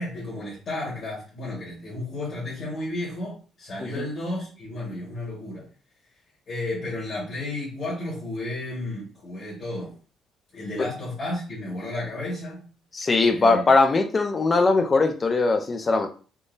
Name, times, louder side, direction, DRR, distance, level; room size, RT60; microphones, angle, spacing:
voice 1, 0.0-5.7 6.5-9.9 10.5-12.6 13.3-13.7, left 1 dB, 40° left, -6 dB, 1.3 m, -32 dB
voice 2, 12.9-16.1, left 3 dB, 20° left, 6 dB, 0.4 m, -20 dB
3.6 x 2.6 x 2.5 m, 0.38 s
cardioid pair, 170°, 0 cm